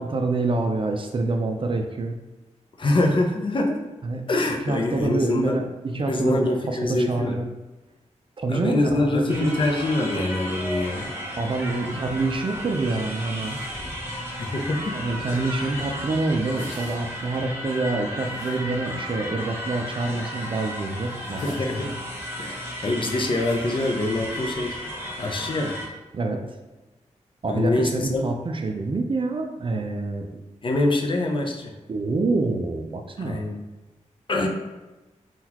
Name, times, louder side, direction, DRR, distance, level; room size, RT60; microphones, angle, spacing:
voice 1, 0.0-2.2 4.0-4.2 4.7-7.6 8.4-9.6 11.4-13.6 14.9-21.4 21.8-21.9 26.1-26.6 27.4-30.4 31.9-33.5, right 3 dB, 40° right, 4 dB, 0.4 m, -27 dB
voice 2, 2.8-3.8 4.3-5.6 6.1-7.4 8.5-11.1 14.4-15.0 15.3-15.4 21.4-21.9 22.4-24.8 25.2-25.8 27.5-28.2 30.6-31.7 33.2-33.6 34.3-34.5, left 2 dB, 40° left, 1 dB, 0.5 m, -24 dB
sound 1, 9.3-25.9, equal, 20° right, 0.8 m, -34 dB
sound 2, 13.2-14.0 16.3-17.4 18.2-19.1 19.7-19.8 21.0-22.0 23.3-23.8, left 1 dB, 75° left, 1.0 m, -46 dB
3.7 x 2.3 x 2.9 m, 1.1 s
wide cardioid pair, 95°, 13 cm